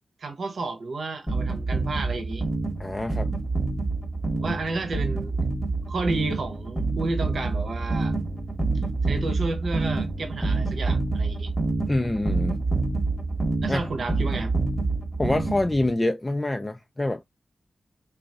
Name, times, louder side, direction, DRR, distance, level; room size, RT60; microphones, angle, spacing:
voice 1, 0.2-2.4 4.4-5.4 5.9-8.2 9.0-11.5 13.6-14.5, right 3 dB, 70° right, 0.9 m, -32 dB
sound 1, 1.3-15.9, right 3 dB, 5° right, 1.0 m, -27 dB
voice 2, 2.8-3.3 11.9-12.6 13.7-13.8 15.2-17.2, left 2 dB, 20° left, 0.3 m, -26 dB
2.9 x 2.6 x 2.5 m
wide cardioid pair, 95°, 0 cm